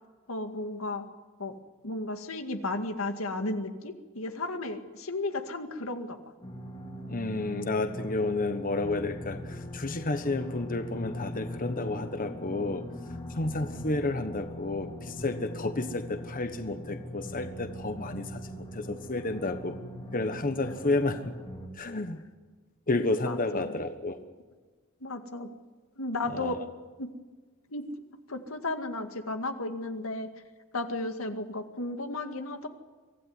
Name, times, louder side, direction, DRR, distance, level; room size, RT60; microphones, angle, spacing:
voice 1, 0.3-1.0 1.4-1.5 1.8-6.2 23.3-23.8 25.0-25.5 26.0-26.6 27.0-27.1 27.7-27.9 28.3-30.3 30.7-32.7, left 2 dB, 85° left, 7 dB, 2.1 m, -34 dB
sound 1, 6.4-21.7, left 1 dB, 25° left, 2.8 m, -41 dB
voice 2, 7.1-12.8 13.3-19.8 20.1-21.3 21.7-22.2 22.9-24.2 26.3-26.6, left 2 dB, 40° left, 8 dB, 1.3 m, -31 dB
24.5 x 15.5 x 9.6 m, 1.4 s
head